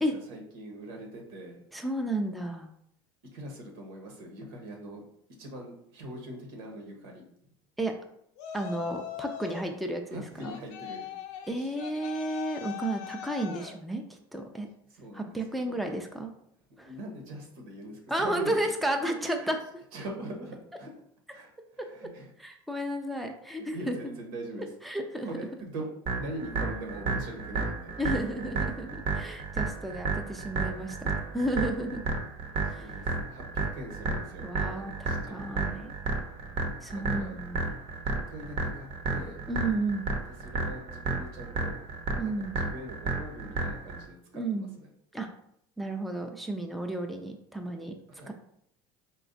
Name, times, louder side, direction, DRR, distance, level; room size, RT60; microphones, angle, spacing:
voice 1, 0.0-1.6 3.3-5.0 5.4-7.2 10.1-11.1 14.9-15.8 16.7-18.6 19.0-19.5 19.9-20.9 21.3-22.3 23.1-24.7 25.2-25.8 26.2-28.2 32.6-35.7 36.9-37.4 38.3-39.4 40.4-41.8 42.2-44.9 48.1-48.3, right 1 dB, 80° right, 1 dB, 1.2 m, -42 dB
voice 2, 1.7-2.7 7.8-7.9 8.5-10.6 11.5-14.7 15.1-16.3 16.8-16.9 18.1-19.6 22.4-24.0 24.8-25.3 28.0-32.0 32.7-32.9 34.4-35.9 36.8-37.8 39.5-40.1 42.2-42.6 44.3-44.7 45.1-45.3 45.8-47.9 48.3-48.4, right 1 dB, ahead, 2 dB, 0.5 m, -32 dB
Yell, 8.4-9.7 10.4-13.8, left 10 dB, 65° left, 0.5 m, -40 dB
sound 1, 26.1-44.0, right 3 dB, 50° right, 0.9 m, -32 dB
4.1 x 2.3 x 3.9 m, 0.71 s
supercardioid pair, 100°, 12 cm